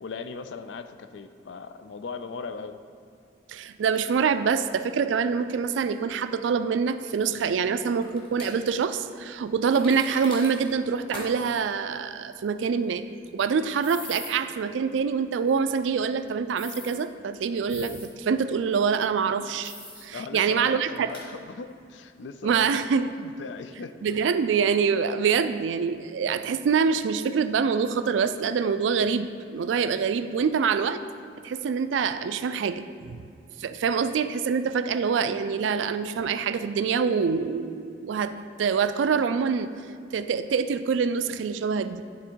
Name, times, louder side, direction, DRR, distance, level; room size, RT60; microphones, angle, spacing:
voice 1, 0.0-2.8 20.1-23.9 33.9-34.0, left 4 dB, 80° left, 10 dB, 0.4 m, -39 dB
voice 2, 3.5-13.0 13.3-19.7 20.0-21.1 22.4-23.1 24.0-31.0 31.4-33.2 33.6-38.3 38.6-39.7 40.1-42.0, right 6 dB, 85° right, 11 dB, 0.3 m, -25 dB
sound 1, 8.0-8.5 9.7-10.7 11.1-11.3 11.6-11.7 13.8-14.3 16.6-17.0 17.7-18.1 19.6-20.1 20.5-20.6 21.1-21.3, left 2 dB, 30° left, 1.4 m, -40 dB
9.9 x 3.6 x 4.6 m, 2.4 s
head